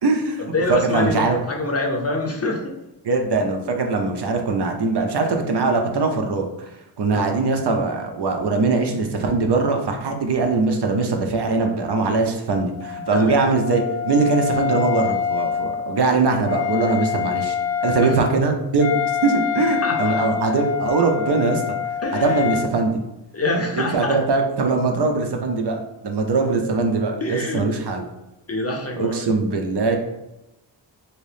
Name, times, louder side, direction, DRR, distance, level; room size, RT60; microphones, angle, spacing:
voice 1, 0.0-1.4 3.0-6.7 7.0-17.6 17.8-18.9 19.2-21.7 22.1-23.0 23.8-28.0 29.0-30.0, right 3 dB, 60° right, 3 dB, 0.6 m, -21 dB
voice 2, 0.5-2.7 7.1-7.3 13.1-13.4 18.0-18.1 19.8-20.2 22.0-22.4 23.3-24.2 27.2-27.6 28.5-29.3, left 2 dB, 35° left, 1 dB, 0.5 m, -25 dB
Wind instrument woodwind instrument, 12.7-22.7, left 9 dB, 85° left, 0.6 m, -26 dB
2.9 x 2.7 x 3.3 m, 0.94 s
wide cardioid pair, 70°, 46 cm